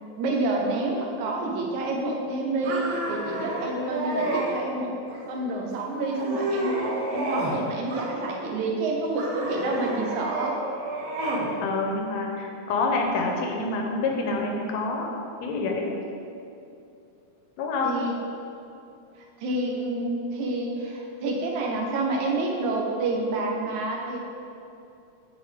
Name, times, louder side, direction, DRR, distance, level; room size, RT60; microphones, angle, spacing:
voice 1, 0.2-4.9 5.3-6.8 7.1-10.6 17.8-18.1 19.2-24.2, right 2 dB, 80° right, -1 dB, 2.2 m, -28 dB
sound 1, 2.6-4.5 5.1-5.6 6.0-7.6 7.9-8.6 9.1-11.5, right 1 dB, 60° right, 1.4 m, -30 dB
voice 2, 11.6-15.1 15.4-16.0 17.6-18.0, left 3 dB, 80° left, 1 dB, 1.8 m, -27 dB
9.1 x 4.3 x 3.5 m, 2.6 s
omnidirectional pair, 3.4 m